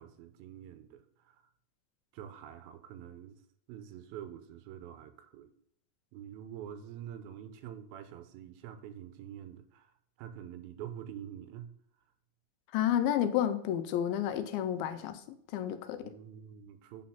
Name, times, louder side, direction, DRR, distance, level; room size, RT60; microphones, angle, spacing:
voice 1, 0.0-1.4 2.1-3.4 3.7-5.5 6.1-9.9 10.2-11.7 16.0-17.1, right 10 dB, 90° right, 2.6 m, -46 dB
voice 2, 12.7-15.2 15.5-16.1, left 10 dB, 85° left, 2.5 m, -30 dB
8.6 x 4.2 x 5.7 m
omnidirectional pair, 4.3 m